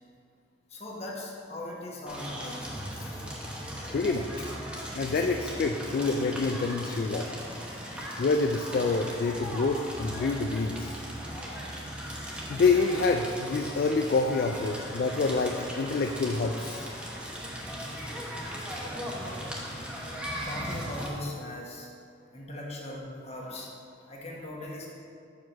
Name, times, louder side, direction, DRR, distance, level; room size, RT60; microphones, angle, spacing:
voice 1, 0.7-2.6 2.9-3.4 14.5-14.6 15.1-15.2 15.8-16.0 20.4-21.9 22.3-23.7 24.0-24.9, left 1 dB, 35° left, -3 dB, 1.2 m, -40 dB
Crackle, 2.1-21.1, equal, 5° right, 0.9 m, -38 dB
voice 2, 3.9-4.3 5.0-7.3 8.2-11.0 12.5-16.9, left 3 dB, 50° left, 4 dB, 0.3 m, -27 dB
5.8 x 5.0 x 6.0 m, 2.4 s
head